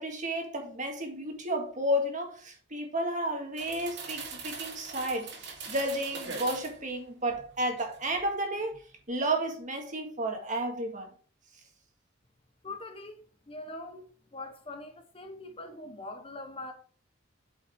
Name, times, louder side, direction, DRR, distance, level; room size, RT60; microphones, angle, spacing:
voice 1, 0.0-5.3 5.7-8.8 9.1-11.1, right 1 dB, 40° right, 1.7 m, -32 dB
sound 1, 3.6-6.8 7.3-8.2 8.6-8.8, right 4 dB, 55° right, 2.3 m, -41 dB
voice 2, 12.6-16.7, left 2 dB, 25° left, 0.8 m, -43 dB
8.8 x 5.2 x 3.6 m
head